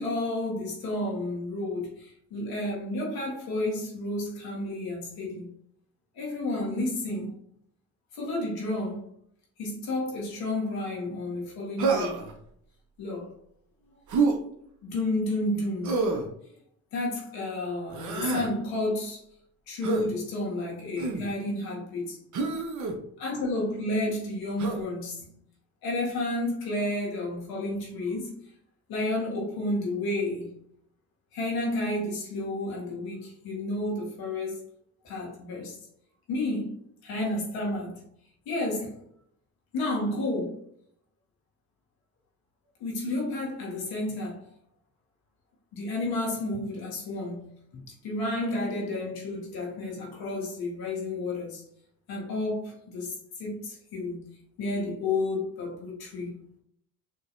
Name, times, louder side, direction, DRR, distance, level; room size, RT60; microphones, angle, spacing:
voice 1, 0.0-5.5 6.2-7.3 8.1-9.1 9.6-12.2 13.0-13.3 14.8-16.1 16.4-16.5 16.9-19.2 19.7-22.2 23.2-25.3 25.8-28.3 28.9-30.5 31.3-34.6 35.0-35.8 36.3-36.7 37.0-38.1 38.5-39.0 39.7-40.6 42.8-44.4 45.7-51.6 52.1-54.3 54.6-56.4, left 2 dB, 85° left, 1.9 m, -31 dB
Human voice, 11.8-12.3 14.1-14.4 15.8-16.3 17.9-18.5 19.8-20.1 21.0-21.3 22.3-22.9 24.6-24.8, right 4 dB, 55° right, 1.0 m, -27 dB
6.3 x 3.0 x 2.6 m
supercardioid pair, 70°, 36 cm